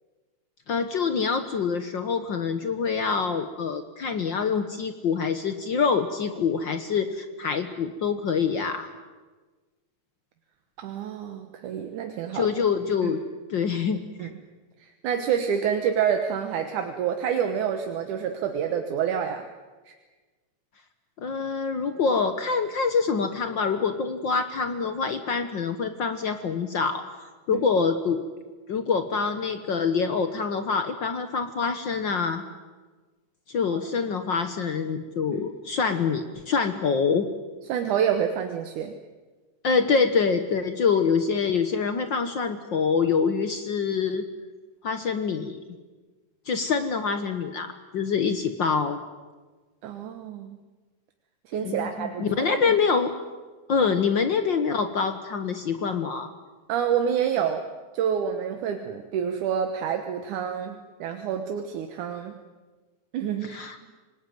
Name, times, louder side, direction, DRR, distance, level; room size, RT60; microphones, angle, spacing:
voice 1, 0.7-8.9 12.3-13.2 13.5-14.3 21.2-27.0 27.5-28.3 28.7-32.4 33.5-37.3 39.6-44.2 44.8-45.6 46.4-49.0 51.6-53.1 53.7-56.3 63.4-63.8, left 5 dB, 65° left, 8 dB, 1.1 m, -25 dB
voice 2, 10.8-12.5 13.0-13.1 14.2-14.4 15.0-19.5 27.5-27.7 35.3-35.5 37.7-38.9 49.8-50.6 51.5-52.7 56.7-57.6 57.9-62.4 63.1-63.6, right 8 dB, 75° right, 6 dB, 2.7 m, -28 dB
25.5 x 20.0 x 9.3 m, 1.3 s
omnidirectional pair, 3.6 m